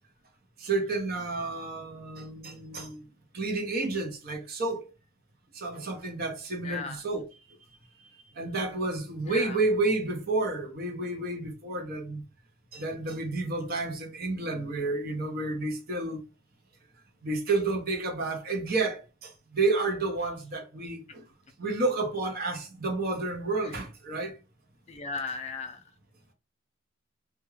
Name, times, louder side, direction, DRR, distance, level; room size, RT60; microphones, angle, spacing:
voice 1, 0.6-3.1 3.3-4.9 5.5-7.3 8.4-12.2 12.7-16.2 17.2-21.2 21.6-24.4, right 3 dB, 50° right, 0.7 m, -30 dB
voice 2, 6.6-7.0 9.3-9.6 24.9-25.8, left 4 dB, 30° left, 0.4 m, -36 dB
2.3 x 2.1 x 3.1 m
head